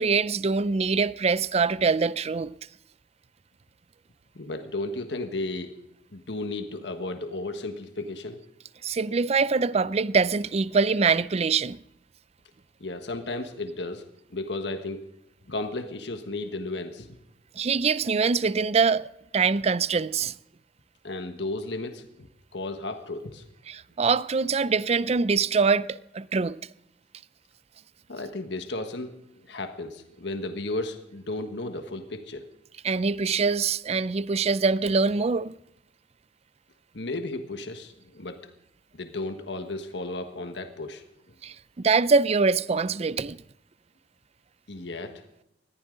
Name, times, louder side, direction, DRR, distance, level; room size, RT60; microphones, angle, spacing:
voice 1, 0.0-2.5 8.8-11.8 17.6-19.1 19.3-20.3 23.7-26.6 32.8-35.5 41.4-43.4, right 4 dB, 35° right, 0.5 m, -24 dB
voice 2, 4.3-5.7 6.1-8.4 12.8-14.0 14.3-15.0 15.5-17.1 21.0-23.4 28.1-29.1 29.5-32.5 36.9-38.4 38.9-41.0 44.7-45.2, left 2 dB, 80° left, 1.4 m, -34 dB
20.5 x 14.5 x 3.9 m
head